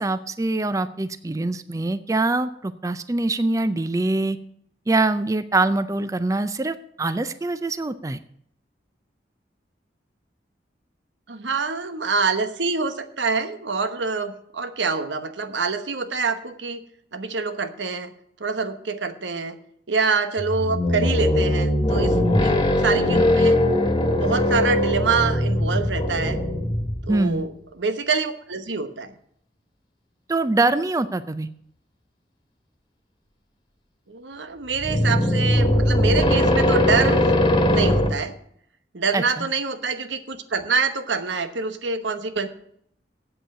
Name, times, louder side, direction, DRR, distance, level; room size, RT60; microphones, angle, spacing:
voice 1, 0.0-4.4 4.9-8.2 27.1-27.5 30.3-31.5 39.1-39.5, right 2 dB, 20° right, 13 dB, 0.4 m, -24 dB
voice 2, 11.3-16.8 17.1-18.1 18.4-19.6 19.9-22.2 22.4-23.6 24.1-26.4 27.0-27.5 27.8-29.1 34.1-37.3 37.7-38.3 38.9-42.5, right 4 dB, 90° right, 9 dB, 1.1 m, -26 dB
sound 1, 20.4-27.2 34.7-38.1, left 1 dB, 25° left, 1.6 m, -20 dB
8.1 x 7.9 x 8.8 m, 0.69 s
head